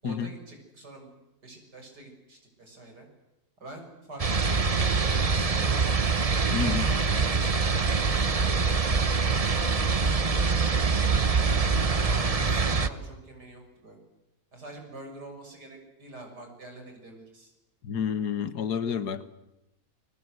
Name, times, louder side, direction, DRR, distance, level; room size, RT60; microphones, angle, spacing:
voice 1, 0.0-1.1 1.4-3.1 3.6-6.0 6.6-11.4 12.0-14.0 14.5-17.5, right 2 dB, 80° right, 3 dB, 7.1 m, -46 dB
sound 1, 4.2-12.9, right 4 dB, 25° right, 0.9 m, -24 dB
voice 2, 6.5-6.9 17.8-19.3, left 7 dB, 75° left, 13 dB, 1.9 m, -29 dB
29.0 x 23.0 x 8.1 m, 0.94 s
omnidirectional pair, 1.8 m